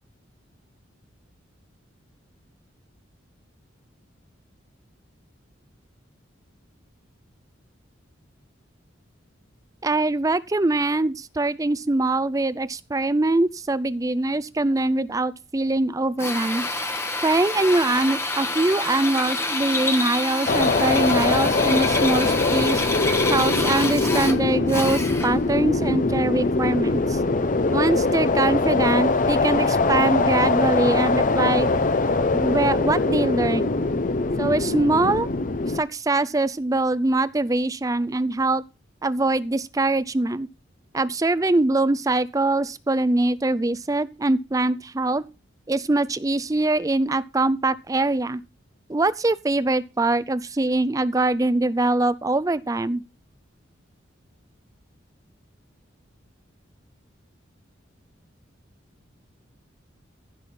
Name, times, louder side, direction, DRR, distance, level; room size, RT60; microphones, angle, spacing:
voice 1, 9.8-16.6 17.2-22.8 23.3-27.2 27.7-31.7 32.3-33.8 34.4-35.3 35.7-38.6 39.0-40.5 40.9-45.2 45.7-48.4 48.9-53.0, right 2 dB, 15° right, 0.4 m, -23 dB
Drill, 16.2-25.5, left 2 dB, 15° left, 1.0 m, -27 dB
sound 1, 20.5-35.8, left 3 dB, 40° left, 0.6 m, -22 dB
15.5 x 5.6 x 4.3 m
head